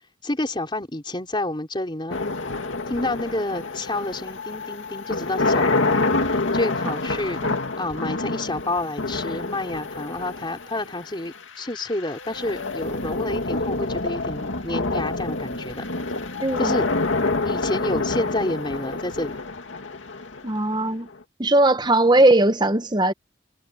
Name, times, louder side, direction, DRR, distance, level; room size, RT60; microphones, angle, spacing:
voice 1, 0.2-2.2 2.9-7.4 7.8-15.8 16.6-16.9 17.4-19.4, left 1 dB, 25° left, 3.8 m, -29 dB
sound 1, 2.1-21.1, left 3 dB, 80° left, 2.3 m, -27 dB
voice 2, 16.4-16.7 20.4-21.1 21.4-23.1, right 2 dB, 20° right, 1.0 m, -19 dB
head